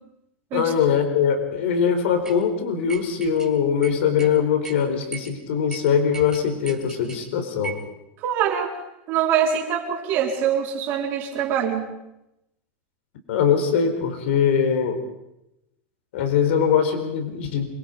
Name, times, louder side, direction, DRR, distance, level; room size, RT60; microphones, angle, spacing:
voice 1, 0.5-7.7 13.3-15.0 16.1-17.6, left 7 dB, 75° left, 6 dB, 4.3 m, -22 dB
sound 1, 2.2-2.4 2.9-3.5 3.8-4.3 4.6-4.8 5.1-5.3 5.7-5.8 6.1-7.2 7.6-7.9, right 5 dB, 10° right, 2.3 m, -37 dB
voice 2, 8.2-8.8 9.1-11.8, right 8 dB, 35° right, 0 dB, 4.1 m, -24 dB
27.0 x 22.5 x 5.2 m, 0.89 s
supercardioid pair, 175°, 6 cm